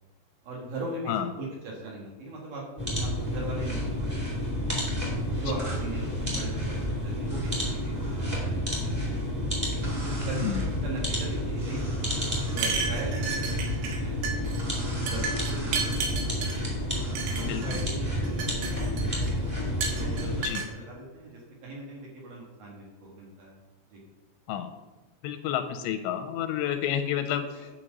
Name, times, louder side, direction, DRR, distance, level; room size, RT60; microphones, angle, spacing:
voice 1, 0.4-4.3 5.4-9.2 10.0-14.2 14.7-16.5 17.3-19.4 19.9-23.6 23.9-24.0 27.6-27.7, right 2 dB, 60° right, -2 dB, 2.8 m, -40 dB
sound 1, 2.8-20.4, equal, 15° right, 1.5 m, -30 dB
sound 2, 5.6-5.9 7.3-8.5 9.8-10.7 11.6-12.9 14.6-16.0 16.9-17.9, equal, 35° right, 1.7 m, -44 dB
sound 3, 12.5-14.0 14.2-14.6 15.1-16.6 17.2-17.8 18.2-19.3 19.8-20.7, right 5 dB, 90° right, 3.9 m, -32 dB
voice 2, 25.2-27.4, left 10 dB, 85° left, 7 dB, 2.8 m, -29 dB
10.0 x 4.4 x 6.4 m, 1.1 s
omnidirectional pair, 5.3 m